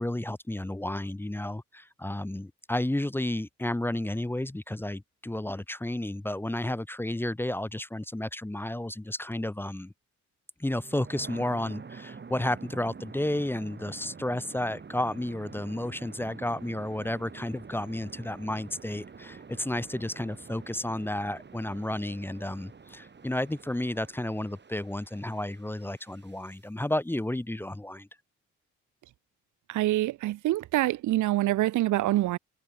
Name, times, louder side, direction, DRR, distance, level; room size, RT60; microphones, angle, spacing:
voice 1, 0.0-9.9 10.6-28.1, left 1 dB, 5° left, 0.9 m, -32 dB
sound 1, 10.7-26.6, right 5 dB, 35° right, 7.0 m, -47 dB
voice 2, 29.7-32.4, right 15 dB, 75° right, 0.8 m, -25 dB
cardioid pair, 90°, 30 cm